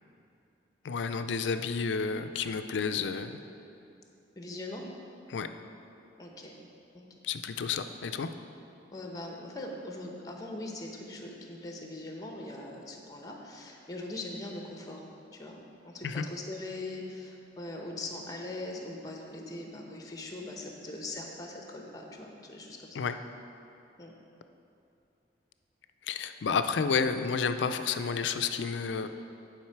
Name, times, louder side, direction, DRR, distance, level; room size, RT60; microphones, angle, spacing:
voice 1, 0.8-3.4 5.3-5.5 7.2-8.3 16.0-16.3 22.9-23.2 26.0-29.1, left 5 dB, 75° left, 9 dB, 0.4 m, -30 dB
voice 2, 4.4-4.9 6.2-6.5 6.9-7.0 8.9-15.0 15.3-23.0 24.0-24.1, left 2 dB, 20° left, 1 dB, 0.8 m, -41 dB
10.5 x 5.0 x 4.6 m, 2.7 s
head